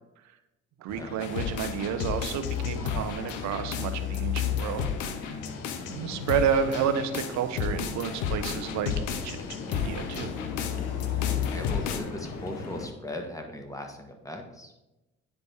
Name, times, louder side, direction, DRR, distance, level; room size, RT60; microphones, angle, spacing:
voice 1, 0.8-4.9 5.9-10.3, right 7 dB, 65° right, 9 dB, 0.8 m, -30 dB
sound 1, 0.9-12.9, left 4 dB, 60° left, 1.1 m, -41 dB
sound 2, 1.2-12.0, left 8 dB, 75° left, 0.7 m, -32 dB
voice 2, 5.8-6.2 11.5-14.7, left 1 dB, 10° left, 4 dB, 1.4 m, -39 dB
9.8 x 4.0 x 3.5 m, 0.98 s
hypercardioid pair, 55°, 31 cm